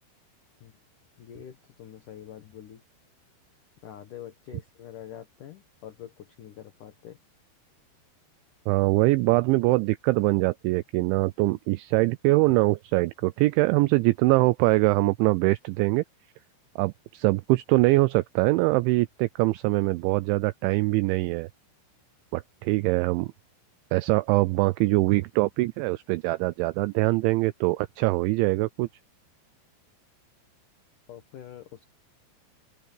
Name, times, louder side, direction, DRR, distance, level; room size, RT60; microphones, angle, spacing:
voice 1, 1.2-2.8 3.8-7.2 31.1-31.9, left 10 dB, 85° left, 1.8 m, -45 dB
voice 2, 8.7-16.0 16.8-21.5 22.3-23.3 23.9-28.9, right 21 dB, 90° right, 2.6 m, -23 dB
open air
omnidirectional pair, 5.9 m